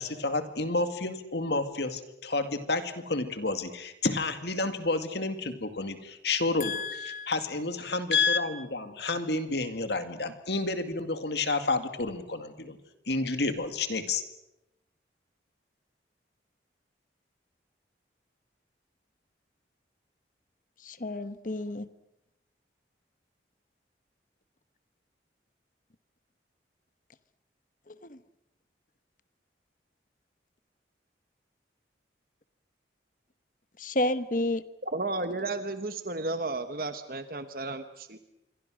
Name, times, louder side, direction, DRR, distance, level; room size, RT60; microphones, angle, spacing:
voice 1, 0.0-12.8 13.1-14.2, left 3 dB, 65° left, 8 dB, 2.2 m, -30 dB
voice 2, 6.6-7.3 20.8-21.9 27.9-28.2 33.8-34.6, left 1 dB, 45° left, 13 dB, 1.1 m, -31 dB
voice 3, 34.9-38.2, right 2 dB, 50° right, 9 dB, 1.1 m, -33 dB
27.0 x 23.5 x 6.4 m, 0.88 s
head